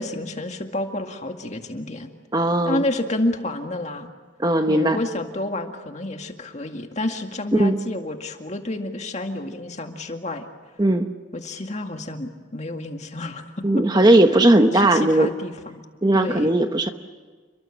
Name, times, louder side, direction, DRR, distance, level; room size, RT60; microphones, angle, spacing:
voice 1, 0.0-2.1 2.6-4.1 4.7-10.5 11.3-13.6 14.7-15.8 16.1-16.5, left 1 dB, 35° left, 4 dB, 2.1 m, -29 dB
voice 2, 2.3-2.8 4.4-5.0 7.5-7.8 10.8-11.1 13.6-15.3 16.0-16.9, right 1 dB, 20° right, 7 dB, 0.9 m, -17 dB
29.5 x 23.0 x 7.4 m, 1.5 s
head